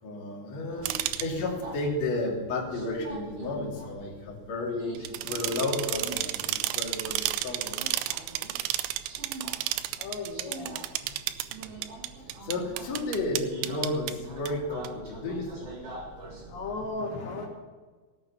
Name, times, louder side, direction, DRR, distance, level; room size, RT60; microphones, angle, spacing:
voice 1, 0.0-7.8 12.4-15.7, left 2 dB, 40° left, -3 dB, 3.4 m, -32 dB
Subway metro underground, 0.7-16.9, right 2 dB, 45° right, 2.2 m, -44 dB
sound 1, 0.8-1.3 4.9-14.1 14.5-14.6 14.8-14.9, right 14 dB, 80° right, 2.7 m, -32 dB
voice 2, 10.0-10.9 16.5-17.5, left 3 dB, 70° left, -1 dB, 3.7 m, -35 dB
18.0 x 7.6 x 7.1 m, 1.4 s
omnidirectional pair, 5.4 m